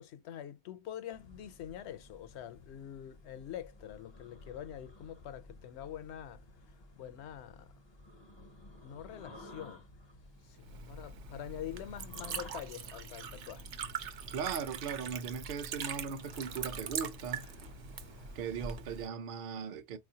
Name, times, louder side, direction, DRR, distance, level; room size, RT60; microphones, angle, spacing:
voice 1, 0.0-6.4 7.0-7.7 8.8-9.8 10.5-13.7, left 10 dB, 75° left, 0.8 m, -45 dB
sound 1, 1.1-18.7, left 2 dB, 40° left, 0.4 m, -55 dB
Liquid, 10.5-19.1, right 6 dB, 75° right, 1.0 m, -42 dB
voice 2, 14.3-17.5 18.3-20.0, right 6 dB, 55° right, 0.7 m, -38 dB
4.2 x 2.4 x 2.7 m
omnidirectional pair, 1.2 m